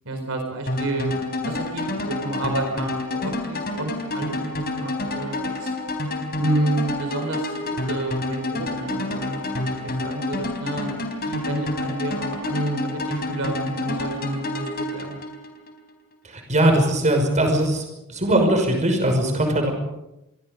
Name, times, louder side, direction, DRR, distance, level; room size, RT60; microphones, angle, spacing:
voice 1, 0.0-5.7 6.4-15.2, right 2 dB, 65° right, 3 dB, 4.4 m, -30 dB
sound 1, 0.7-15.7, left 2 dB, 45° left, 3.9 m, -29 dB
voice 2, 16.3-17.8 18.1-19.7, right 1 dB, 35° right, 4 dB, 5.7 m, -20 dB
27.0 x 22.5 x 5.3 m, 0.89 s
head